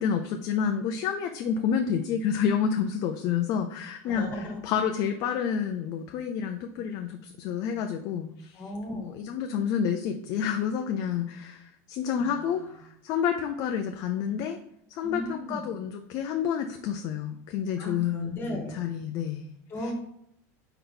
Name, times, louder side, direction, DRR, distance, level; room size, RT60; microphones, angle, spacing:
voice 1, 0.0-8.6 8.9-12.6 13.0-14.6 14.9-19.5 19.8-19.9, left 7 dB, 45° left, 5 dB, 0.5 m, -29 dB
voice 2, 4.1-4.6 8.5-9.2 12.2-12.7 15.0-15.7 17.8-18.7 19.7-19.9, left 1 dB, 25° left, 2 dB, 1.3 m, -36 dB
4.5 x 3.8 x 5.4 m, 0.74 s
supercardioid pair, 145°, 8 cm